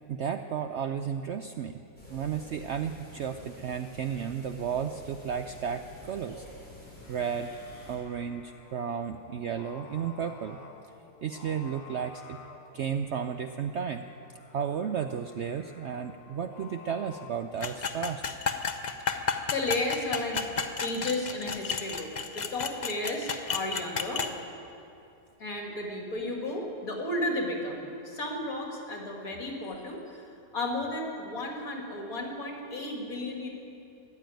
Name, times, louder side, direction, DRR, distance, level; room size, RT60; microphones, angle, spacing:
voice 1, 0.1-1.8 2.1-6.4 7.1-7.6 7.9-10.6 11.2-12.4 12.7-14.1 14.5-18.2, right 7 dB, 70° right, 8 dB, 0.6 m, -33 dB
sound 1, 2.0-8.0, left 1 dB, 5° left, 4.0 m, -49 dB
Singing, 6.8-17.3, left 5 dB, 80° left, 1.8 m, -52 dB
sound 2, 17.6-24.3, left 5 dB, 45° left, 0.5 m, -32 dB
voice 2, 19.5-20.4 20.8-24.3 25.4-30.2 30.5-33.5, left 1 dB, 65° left, 0 dB, 2.7 m, -33 dB
14.5 x 10.5 x 9.1 m, 2.7 s
omnidirectional pair, 1.6 m